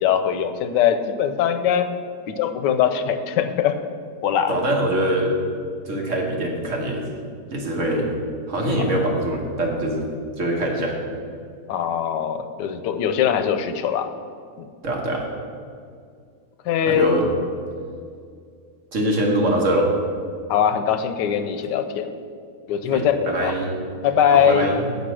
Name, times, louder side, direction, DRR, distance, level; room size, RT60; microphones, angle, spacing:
voice 1, 0.0-1.9 2.3-3.8 4.2-4.7 8.8-9.2 11.7-14.1 14.6-14.7 16.7-17.1 20.5-22.1 22.7-23.5 24.0-24.7, left 8 dB, 90° left, 9 dB, 1.3 m, -21 dB
voice 2, 4.5-5.3 5.8-7.0 7.5-8.1 8.5-10.1 10.4-11.0 14.8-15.2 16.9-17.2 18.9-19.9 22.9-23.8 24.3-24.8, right 1 dB, 50° right, 0 dB, 1.4 m, -23 dB
8.5 x 5.3 x 6.2 m, 2.3 s
omnidirectional pair, 1.8 m